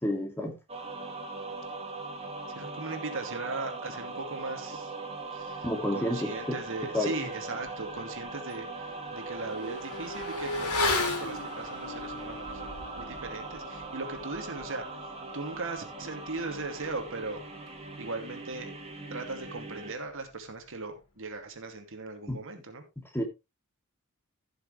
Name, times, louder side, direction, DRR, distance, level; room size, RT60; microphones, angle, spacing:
voice 1, 0.0-0.6 5.6-6.6 6.9-7.1 22.3-22.4 23.1-23.2, left 1 dB, 10° left, 4 dB, 2.3 m, -30 dB
sound 1, 0.7-19.9, right 3 dB, 30° right, 2.3 m, -40 dB
voice 2, 2.6-4.9 5.3-5.7 5.9-15.0 15.3-17.4 18.0-18.7 19.1-22.8, right 3 dB, 60° right, 5 dB, 2.4 m, -38 dB
Motorcycle / Accelerating revving vroom, 7.7-7.8 8.1-18.2 18.4-18.5, left 2 dB, 80° left, 3.7 m, -37 dB
16.0 x 6.7 x 3.2 m, 0.24 s
head